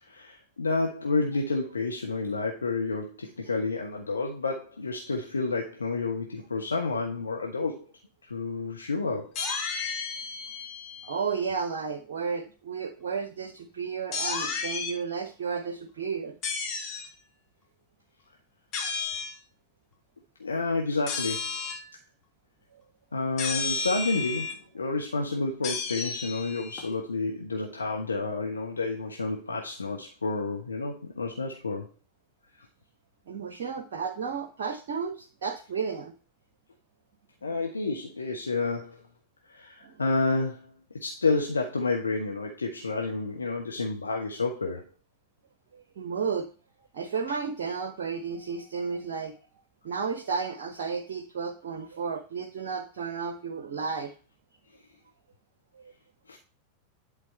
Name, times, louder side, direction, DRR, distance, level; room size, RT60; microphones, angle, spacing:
voice 1, 0.0-7.8 8.2-9.3 20.4-21.6 23.1-31.9 32.6-32.7 37.4-39.0 39.5-40.7 41.0-44.8 56.3-56.4, left 3 dB, 75° left, 1 dB, 1.0 m, -30 dB
sound 1, 9.4-11.3 14.1-15.0 16.4-17.1 18.7-19.3 21.1-21.9 23.4-24.5 25.6-26.8, left 5 dB, 35° left, 1.7 m, -32 dB
voice 2, 11.0-16.4 33.3-36.1 37.4-37.6 39.8-40.0 45.7-46.5 46.9-49.4 49.8-54.1 55.8-55.9, right 5 dB, 60° right, 9 dB, 0.8 m, -33 dB
10.5 x 4.0 x 4.4 m, 0.36 s
figure-of-eight pair, 90°, 0 cm